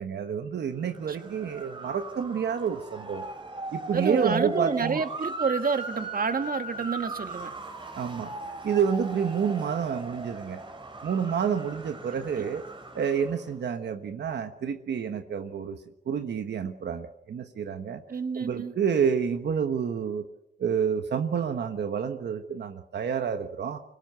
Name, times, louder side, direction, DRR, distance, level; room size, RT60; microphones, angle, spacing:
voice 1, 0.0-3.3 3.7-5.0 8.0-8.3 8.6-10.6 11.0-12.6 12.9-15.8 16.1-18.0 18.3-20.3 20.6-23.8, right 7 dB, 85° right, 7 dB, 1.3 m, -29 dB
Motor vehicle (road) / Siren, 0.8-13.5, right 2 dB, 30° right, 3.7 m, -38 dB
voice 2, 3.9-7.5 12.3-12.5 18.1-18.7, right 5 dB, 55° right, 8 dB, 1.8 m, -29 dB
24.5 x 17.5 x 7.9 m, 0.84 s
cardioid pair, 80°, 17 cm